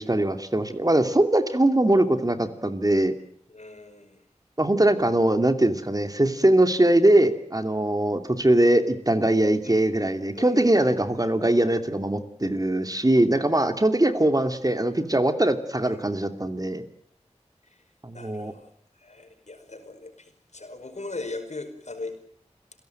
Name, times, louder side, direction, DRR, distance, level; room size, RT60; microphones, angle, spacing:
voice 1, 0.0-3.1 4.6-16.8 18.0-18.5, right 1 dB, 30° right, 8 dB, 2.6 m, -21 dB
voice 2, 3.5-4.2 9.6-9.8 10.3-11.1 15.8-16.1 17.7-17.8 18.1-18.7 19.0-22.1, left 2 dB, 80° left, 7 dB, 5.2 m, -39 dB
29.0 x 17.0 x 9.2 m, 0.64 s
wide cardioid pair, 55°, 12 cm